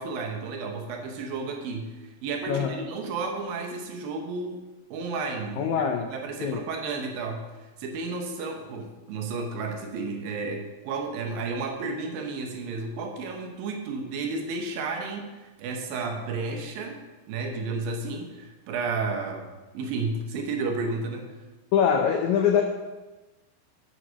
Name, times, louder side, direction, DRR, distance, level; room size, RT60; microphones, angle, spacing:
voice 1, 0.0-7.4 7.8-21.3, right 3 dB, 80° right, 2 dB, 2.8 m, -32 dB
voice 2, 2.5-2.8 5.6-6.1 6.4-6.6 21.7-22.6, left 8 dB, 85° left, 3 dB, 1.6 m, -23 dB
8.2 x 5.8 x 6.2 m, 1.2 s
omnidirectional pair, 4.2 m